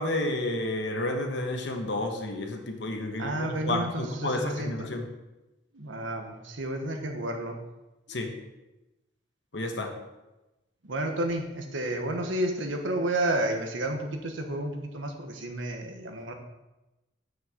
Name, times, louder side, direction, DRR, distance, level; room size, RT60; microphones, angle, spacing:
voice 1, 0.0-5.1 8.1-8.3 9.5-9.9, left 2 dB, 70° left, 4 dB, 1.2 m, -31 dB
voice 2, 3.2-4.9 5.7-7.6 10.8-16.3, right 1 dB, 90° right, 4 dB, 1.2 m, -31 dB
6.3 x 5.6 x 7.2 m, 1.0 s
head